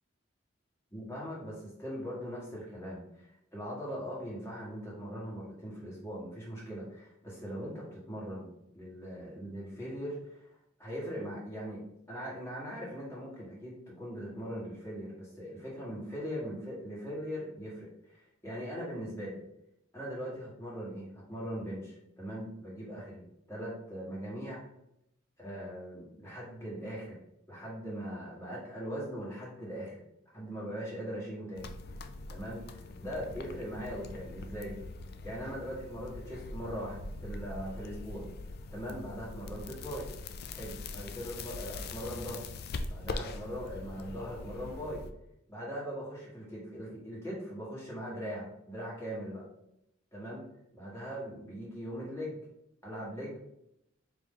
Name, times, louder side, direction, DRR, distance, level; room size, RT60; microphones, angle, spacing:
voice 1, 0.9-8.5 8.7-10.5 10.8-11.8 12.1-19.4 19.9-24.6 25.4-27.2 27.5-30.0 30.3-31.7 32.3-34.8 35.2-38.3 38.7-40.0 40.5-42.4 42.9-45.0 45.5-49.4 50.1-50.4 50.7-52.4 52.8-53.4, equal, 15° left, -6 dB, 1.6 m, -40 dB
sound 1, 31.6-45.1, left 3 dB, 55° left, 0.3 m, -42 dB
4.5 x 3.0 x 3.7 m, 0.81 s
head